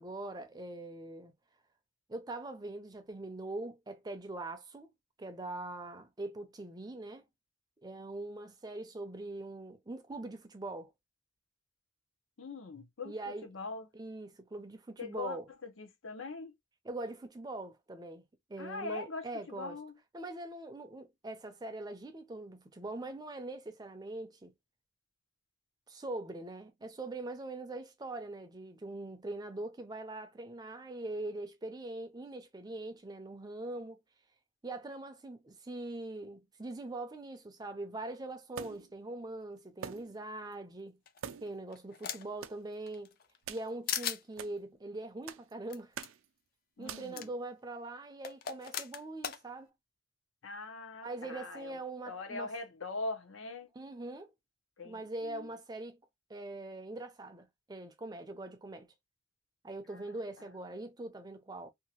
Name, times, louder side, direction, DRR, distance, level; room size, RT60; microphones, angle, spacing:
voice 1, 0.0-1.3 2.1-4.9 5.2-7.2 7.8-10.9 13.0-13.5 13.9-15.5 16.8-18.2 18.5-19.8 20.1-24.5 25.9-34.0 34.6-41.0 41.4-43.2 43.5-45.9 46.8-49.7 51.0-52.5 53.7-54.3 54.8-56.0 56.3-58.9 59.6-61.7, right 2 dB, 20° right, 0.4 m, -42 dB
voice 2, 12.4-13.9 15.0-16.5 18.6-19.9 46.8-47.3 50.4-51.8 52.1-53.7 54.8-55.5 59.9-60.2, left 3 dB, 85° left, 0.8 m, -42 dB
sound 1, 38.5-39.0 39.8-40.2 40.5-40.6 41.2-41.6 42.4-42.6 43.4-43.7 44.4-44.6 45.3-45.5 45.9-46.3 46.9-47.2, right 8 dB, 90° right, 0.4 m, -44 dB
sound 2, 41.1-42.4 42.9-43.6 43.9-44.2 45.7-45.8 46.0-46.1 47.2-47.3 48.2-49.4, left 9 dB, 50° left, 0.4 m, -38 dB
2.8 x 2.3 x 2.8 m
head